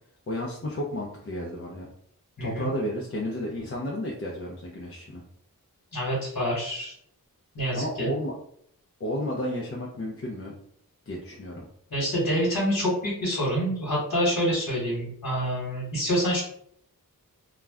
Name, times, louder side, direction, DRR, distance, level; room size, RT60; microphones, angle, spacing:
voice 1, 0.3-1.9 2.4-5.2 7.7-8.3 9.0-10.5 11.1-11.6, left 1 dB, 40° left, -3 dB, 0.5 m, -32 dB
voice 2, 2.4-2.7 5.9-6.9 7.5-8.1 11.9-16.4, equal, 65° left, -6 dB, 1.2 m, -27 dB
2.3 x 2.1 x 3.4 m, 0.69 s
wide cardioid pair, 60°, 36 cm